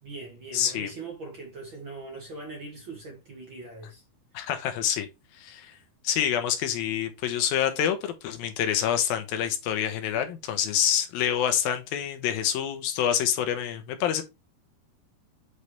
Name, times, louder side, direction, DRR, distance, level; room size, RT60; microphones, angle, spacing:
voice 1, 0.0-4.0 5.6-5.8, right 3 dB, 40° right, 1.9 m, -41 dB
voice 2, 0.5-0.9 4.3-5.1 5.4-5.7 6.0-14.2, left 9 dB, 75° left, 2.7 m, -27 dB
8.4 x 4.8 x 3.2 m
omnidirectional pair, 4.4 m